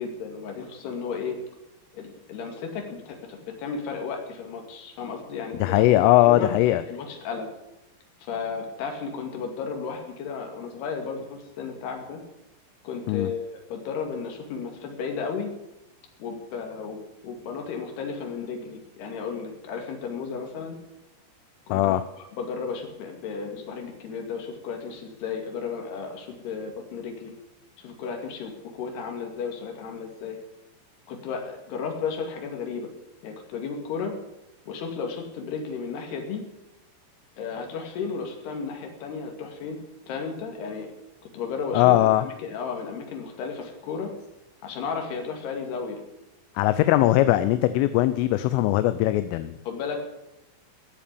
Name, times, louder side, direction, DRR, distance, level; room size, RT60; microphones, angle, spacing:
voice 1, 0.0-1.4 1.9-6.0 6.3-6.5 6.9-7.5 8.3-12.2 12.8-15.5 16.2-17.0 17.2-20.8 21.7-27.3 27.8-30.4 31.1-32.9 33.2-34.1 34.7-36.4 37.4-39.8 40.1-40.9 41.3-41.9 42.2-44.1 44.6-46.0 49.7-50.0, left 5 dB, 55° left, 2 dB, 4.1 m, -33 dB
voice 2, 5.6-6.8 13.1-13.3 21.7-22.0 41.7-42.2 46.6-49.6, left 15 dB, 80° left, 12 dB, 3.1 m, -20 dB
17.0 x 7.3 x 8.6 m, 0.90 s
omnidirectional pair, 5.9 m